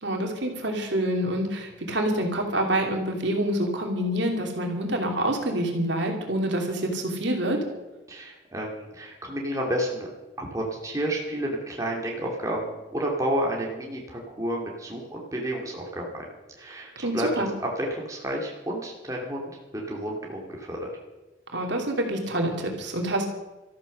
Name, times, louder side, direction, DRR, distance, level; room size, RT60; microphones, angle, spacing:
voice 1, 0.0-7.6 17.0-17.5 21.5-23.3, right 1 dB, 65° right, 2 dB, 2.7 m, -27 dB
voice 2, 8.1-10.1 10.4-16.3 16.6-20.9, right 1 dB, 15° right, -2 dB, 2.4 m, -31 dB
13.5 x 13.5 x 6.5 m, 1.1 s
head